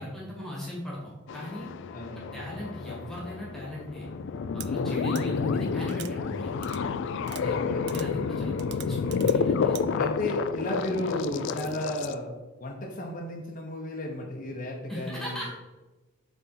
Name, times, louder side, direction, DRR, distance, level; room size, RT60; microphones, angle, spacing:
voice 1, 0.0-1.7 2.1-4.1 4.5-6.7 7.3-7.6 7.9-9.8 14.9-15.5, equal, ahead, -4 dB, 1.7 m, -38 dB
sound 1, 1.3-12.1, left 5 dB, 65° left, 0.3 m, -30 dB
voice 2, 1.9-2.4 7.4-8.1 9.9-12.3 12.6-15.5, left 1 dB, 45° left, -1 dB, 0.8 m, -34 dB
sound 2, 4.6-4.7 5.1-5.2 5.9-6.1 6.6-6.8 7.2-7.4 7.9-8.1 8.6-9.4 9.7-9.8, right 15 dB, 60° right, 0.3 m, -42 dB
7.5 x 3.5 x 4.3 m, 1.2 s
head